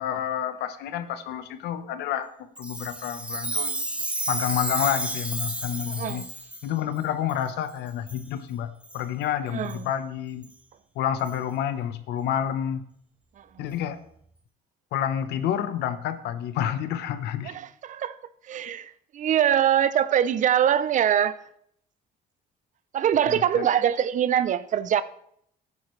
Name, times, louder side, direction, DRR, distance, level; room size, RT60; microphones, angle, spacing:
voice 1, 0.0-2.3 2.6-3.8 4.3-6.3 6.6-10.5 10.9-12.8 13.6-14.0 14.9-17.6 23.3-23.7, left 10 dB, 80° left, 1.0 m, -29 dB
Chime, 2.6-6.6 7.3-7.4 8.1-8.3 8.8-9.0 9.7-9.8 10.4-10.5 11.3-11.4, right 1 dB, 5° right, 1.0 m, -31 dB
voice 2, 5.9-6.3 9.5-9.9 17.5-18.1 18.5-21.4 22.9-25.0, right 9 dB, 50° right, 0.6 m, -23 dB
13.5 x 9.7 x 3.2 m
cardioid pair, 110°, 17 cm